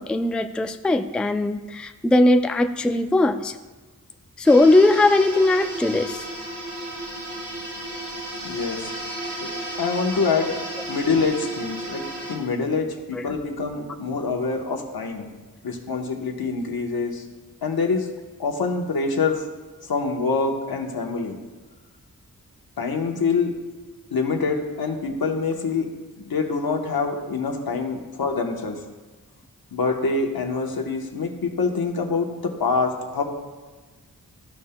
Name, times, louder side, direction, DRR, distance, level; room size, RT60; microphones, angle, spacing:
voice 1, 0.0-3.5 4.4-6.2 13.1-13.2, left 2 dB, 5° left, 7 dB, 0.3 m, -19 dB
sound 1, 4.4-12.4, right 1 dB, 55° right, 2.3 m, -33 dB
voice 2, 8.4-9.5 9.8-10.6 10.9-12.0 12.3-15.3 15.6-17.2 17.6-18.1 18.4-19.5 19.8-21.3 22.8-23.5 24.1-25.8 26.2-28.8 29.7-33.2, left 4 dB, 80° left, 2 dB, 1.1 m, -25 dB
14.0 x 5.6 x 2.2 m, 1.3 s
wide cardioid pair, 85°, 36 cm